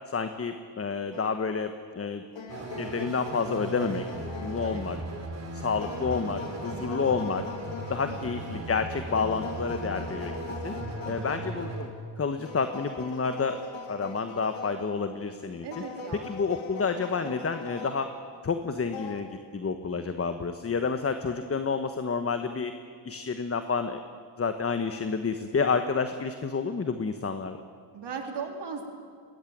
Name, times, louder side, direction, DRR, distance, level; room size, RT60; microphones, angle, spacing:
voice 1, 0.1-2.2 2.8-4.0 4.4-5.0 5.5-7.4 7.9-10.3 10.6-10.7 11.1-11.9 12.2-13.6 13.9-15.7 16.3-18.1 18.4-22.7 23.0-24.0 24.4-27.6, left 5 dB, 30° left, 8 dB, 1.3 m, -29 dB
sound 1, 1.1-1.9 2.3-5.3 5.8-8.8 9.1-11.8 12.5-15.2 15.7-18.4 18.9-19.2, left 4 dB, 90° left, 2.4 m, -41 dB
sound 2, 2.5-11.9, right 2 dB, 35° right, 4.8 m, -37 dB
voice 2, 8.1-8.5 11.1-11.3 15.6-16.4 16.9-17.0 27.9-28.9, right 5 dB, 65° right, 3 dB, 4.0 m, -38 dB
21.5 x 20.0 x 9.4 m, 2.1 s
cardioid pair, 90°, 45 cm